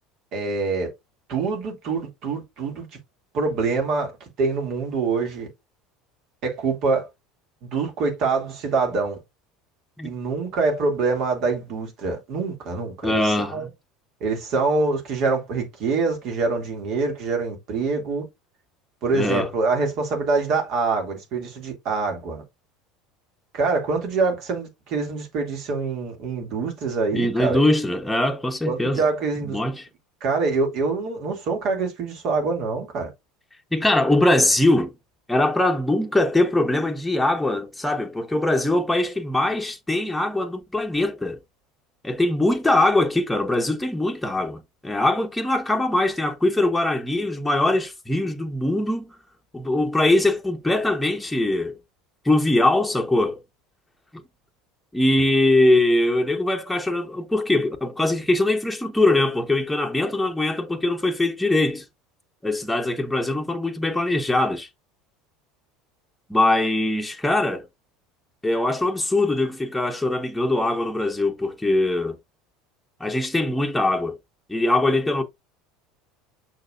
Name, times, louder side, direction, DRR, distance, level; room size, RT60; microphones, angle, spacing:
voice 1, 0.3-0.9 1.3-2.9 3.3-4.1 4.4-5.5 6.4-7.1 7.7-9.2 10.0-13.7 14.2-18.2 19.0-22.4 23.5-27.6 28.7-29.6 30.2-33.1, right 4 dB, 55° right, 2.4 m, -25 dB
voice 2, 13.0-13.7 19.1-19.5 27.1-29.0 29.4-29.9 33.7-34.9 35.3-41.4 42.0-49.1 49.5-51.8 52.2-53.4 54.9-61.8 62.4-64.7 66.3-67.6 68.4-72.2 73.0-74.1 74.5-75.2, left 2 dB, 5° left, 1.1 m, -22 dB
6.5 x 6.2 x 2.5 m
figure-of-eight pair, 70°, 0 cm